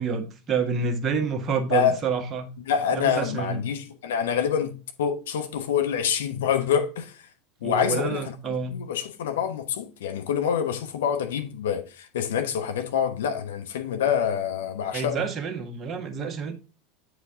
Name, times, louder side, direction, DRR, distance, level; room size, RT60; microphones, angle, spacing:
voice 1, 0.0-2.5 2.9-3.6 7.6-8.8 14.9-16.5, right 5 dB, 30° right, 1.6 m, -28 dB
voice 2, 2.7-4.7 5.0-7.2 7.6-8.2 8.7-15.2, left 8 dB, 65° left, 1.1 m, -26 dB
8.6 x 5.1 x 3.8 m
figure-of-eight pair, 80°, 0 cm